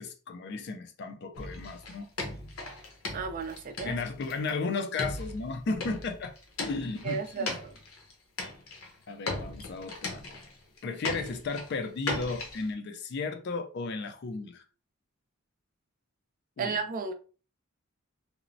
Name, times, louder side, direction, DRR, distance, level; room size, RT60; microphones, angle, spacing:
voice 1, 0.0-2.1 3.8-6.3 6.6-7.6 9.1-10.2 10.8-14.6 16.6-16.7, left 3 dB, 50° left, 0.3 m, -34 dB
sound 1, 1.3-4.5 5.0-8.1 8.4-8.9 9.3-10.8 11.0-12.7, left 2 dB, 85° left, 0.7 m, -38 dB
voice 2, 3.1-4.0 7.0-7.7 16.6-17.1, right 5 dB, 40° right, 0.3 m, -33 dB
3.0 x 2.0 x 2.5 m
head